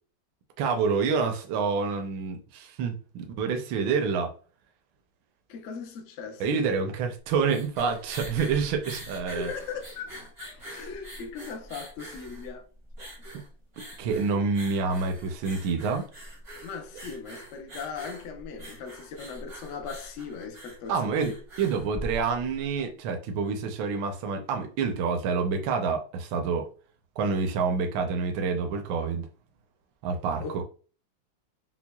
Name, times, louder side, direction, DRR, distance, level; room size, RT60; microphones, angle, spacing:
voice 1, 0.6-4.3 6.4-9.5 13.3-13.4 14.0-16.1 20.9-26.7 27.2-29.3 30.0-30.6, right 5 dB, 80° right, 1.4 m, -28 dB
voice 2, 5.5-6.6 9.3-12.6 13.2-13.3 16.6-21.4 30.4-30.6, left 5 dB, 70° left, 0.7 m, -39 dB
sound 1, 7.2-22.6, right 1 dB, 35° right, 0.5 m, -43 dB
5.8 x 2.1 x 2.2 m
omnidirectional pair, 2.1 m